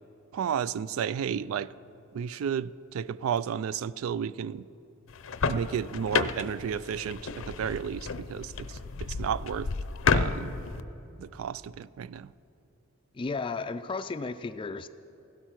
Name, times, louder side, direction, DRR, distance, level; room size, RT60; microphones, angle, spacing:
voice 1, 0.3-1.7 2.1-4.7 5.5-9.7 10.1-10.5 11.2-12.3, right 8 dB, 90° right, 19 dB, 0.3 m, -32 dB
sound 1, 5.1-10.8, left 5 dB, 80° left, 0.6 m, -31 dB
voice 2, 13.1-14.9, left 4 dB, 25° left, 11 dB, 0.3 m, -34 dB
16.0 x 12.5 x 5.9 m, 2.8 s
head